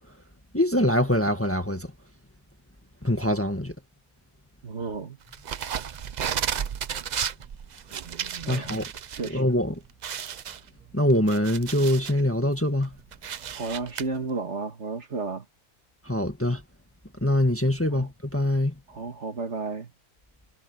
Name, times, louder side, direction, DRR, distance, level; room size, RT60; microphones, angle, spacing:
voice 1, 0.5-1.9 3.0-3.7 8.5-8.8 9.2-9.7 10.9-13.0 16.0-16.6 17.2-18.7, left 1 dB, 10° left, 1.6 m, -24 dB
voice 2, 4.6-5.2 8.4-8.7 9.1-9.4 13.6-15.5 17.9-18.1 18.9-19.9, right 4 dB, 50° right, 2.1 m, -32 dB
sound 1, 5.3-9.3 9.6-9.7 10.0-12.2 12.7-14.0, right 8 dB, 70° right, 0.4 m, -33 dB
omnidirectional pair, 1.5 m